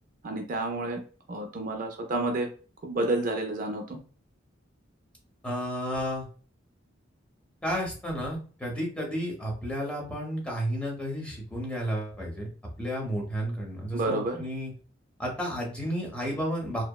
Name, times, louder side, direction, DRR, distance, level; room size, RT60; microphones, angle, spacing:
voice 1, 0.2-1.0 1.3-2.5 2.8-4.0 13.9-14.4, right 2 dB, 45° right, 3 dB, 0.4 m, -29 dB
voice 2, 5.4-6.3 7.6-12.5 12.8-14.7 15.2-16.8, equal, 5° left, -2 dB, 0.8 m, -32 dB
2.7 x 2.0 x 2.3 m, 0.38 s
head